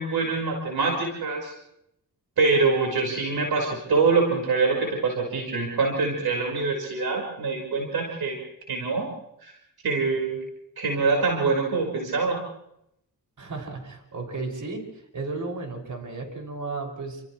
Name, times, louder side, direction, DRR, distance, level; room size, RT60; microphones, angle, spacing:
voice 1, 0.0-1.5 2.4-8.4 8.7-9.1 9.4-9.5 9.8-10.4 10.8-12.4, right 4 dB, 80° right, 0 dB, 5.1 m, -24 dB
voice 2, 13.4-17.2, right 3 dB, 55° right, 1 dB, 6.5 m, -34 dB
30.0 x 28.0 x 3.2 m, 0.78 s
cardioid pair, 70°, 36 cm